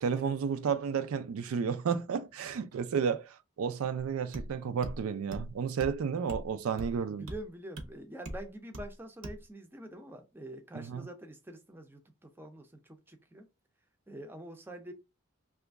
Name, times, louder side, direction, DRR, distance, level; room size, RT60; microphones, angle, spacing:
voice 1, 0.0-7.2 10.7-11.0, right 6 dB, 80° right, 0.4 m, -32 dB
sound 1, 4.3-4.5 4.8-5.0 5.3-5.5 5.8-6.0 6.3-6.5 6.8-6.9 7.3-7.4 7.8-7.9 8.2-8.4 8.7-8.9 9.2-9.4, right 1 dB, 60° right, 0.7 m, -40 dB
voice 2, 7.1-13.5 14.1-14.9, right 1 dB, 10° right, 0.4 m, -46 dB
2.9 x 2.4 x 3.4 m
head